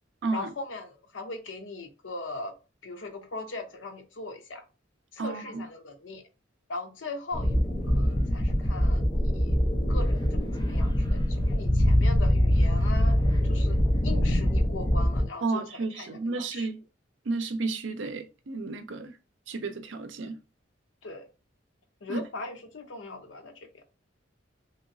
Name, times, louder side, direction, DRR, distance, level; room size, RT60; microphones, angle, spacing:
voice 1, 0.3-2.5 2.8-4.6 5.1-6.2 6.7-9.1 9.3-9.5 9.9-13.2 13.4-16.7 21.0-21.2 22.0-23.8, left 2 dB, 75° left, 0.7 m, -40 dB
voice 2, 5.2-5.6 15.4-16.8 17.3-19.1 19.5-20.4 22.1-22.2, right 3 dB, 70° right, 0.6 m, -32 dB
sound 1, 7.3-15.3, equal, 20° left, 0.7 m, -24 dB
3.0 x 2.9 x 2.6 m
head